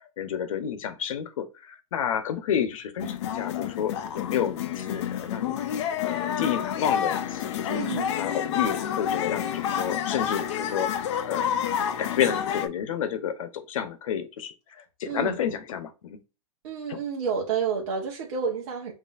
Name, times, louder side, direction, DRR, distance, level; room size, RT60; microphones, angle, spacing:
voice 1, 0.2-5.6 6.0-7.8 8.2-10.9 11.2-11.4 12.0-14.5 15.0-16.2 16.9-17.0, left 8 dB, 70° left, 0.9 m, -30 dB
sound 1, 3.0-12.7, left 9 dB, 55° left, 0.6 m, -29 dB
voice 2, 7.7-8.1 15.1-15.4 16.6-18.9, right 6 dB, 55° right, 1.0 m, -30 dB
5.4 x 2.8 x 2.5 m
hypercardioid pair, 150°, 18 cm